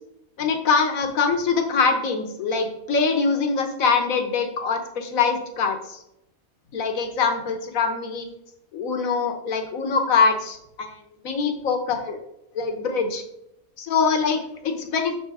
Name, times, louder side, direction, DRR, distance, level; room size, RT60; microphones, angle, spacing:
voice 1, 0.4-6.0 6.7-8.3 8.7-12.2 12.5-13.2 13.8-15.2, left 5 dB, 70° left, 6 dB, 1.4 m, -23 dB
6.5 x 4.4 x 4.8 m, 0.81 s
omnidirectional pair, 1.5 m